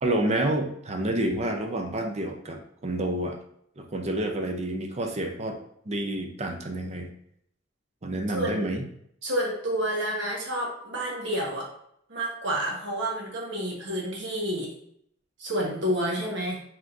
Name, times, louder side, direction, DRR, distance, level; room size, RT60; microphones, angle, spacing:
voice 1, 0.0-3.4 3.8-5.6 5.9-7.1 8.0-8.8, right 1 dB, 35° right, 4 dB, 0.6 m, -29 dB
voice 2, 8.3-8.7 9.2-11.7 12.1-14.7 15.4-16.6, right 1 dB, 65° right, -2 dB, 1.3 m, -29 dB
4.9 x 3.6 x 2.6 m, 0.71 s
head